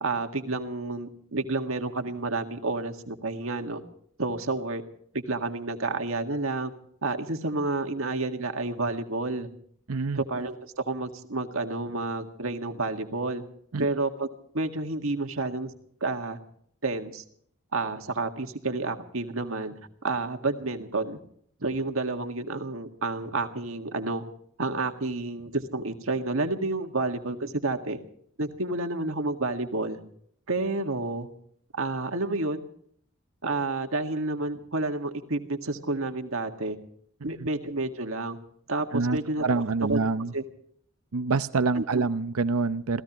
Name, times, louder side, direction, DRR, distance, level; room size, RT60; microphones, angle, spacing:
voice 1, 0.0-3.8 4.2-4.8 5.1-6.7 7.0-9.5 10.2-13.4 13.8-14.3 14.5-15.7 16.0-16.4 16.8-17.2 17.7-19.7 20.0-21.2 21.6-24.3 24.6-28.0 28.4-30.0 30.5-31.3 31.8-32.7 33.4-36.8 37.2-38.4 38.7-39.6 39.9-40.0 40.3-40.4 41.8-42.0, right 3 dB, 70° right, 5 dB, 1.9 m, -30 dB
voice 2, 9.9-10.2 13.7-13.9 37.4-37.5 38.9-40.3 41.1-43.0, right 4 dB, 85° right, 12 dB, 0.7 m, -26 dB
27.5 x 17.0 x 3.0 m, 0.62 s
head